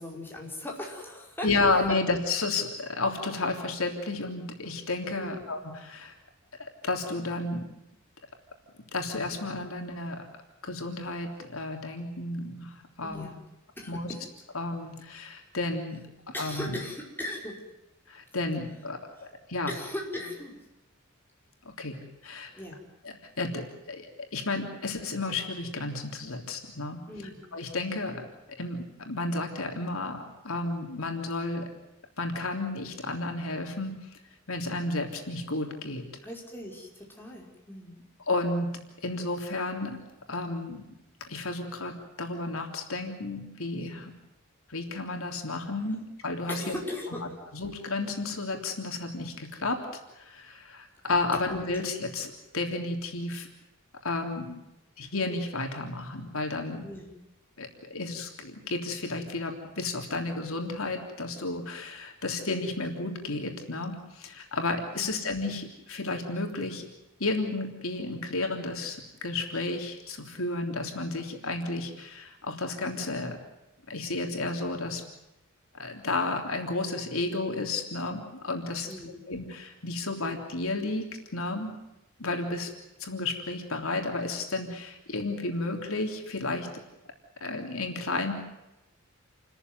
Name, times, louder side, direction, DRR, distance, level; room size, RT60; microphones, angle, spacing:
voice 1, 0.0-1.5 5.2-5.4 13.0-13.4 13.8-14.2 16.3-17.6 19.1-19.3 19.7-20.6 22.5-22.8 27.1-27.4 36.2-38.0 46.5-47.3 51.7-51.8 56.8-57.2 64.9-65.1 78.9-79.2, left 1 dB, 10° left, -2 dB, 5.3 m, -38 dB
voice 2, 1.4-6.1 6.6-7.7 8.9-10.3 10.6-13.3 13.9-14.1 14.5-16.0 16.4-16.8 18.1-19.7 21.6-22.5 23.0-27.0 27.5-28.2 28.6-31.7 32.2-33.9 34.5-36.0 38.3-38.7 39.0-40.0 40.3-40.9 41.3-44.1 44.7-46.7 47.5-49.8 50.1-53.5 54.0-54.6 55.0-56.8 57.6-66.9 67.2-73.4 73.9-75.0 75.7-78.9 79.3-81.1 81.3-81.7 82.2-82.7 83.0-86.7 87.4-88.3, left 2 dB, 80° left, 4 dB, 3.4 m, -32 dB
29.0 x 14.0 x 9.4 m, 0.94 s
head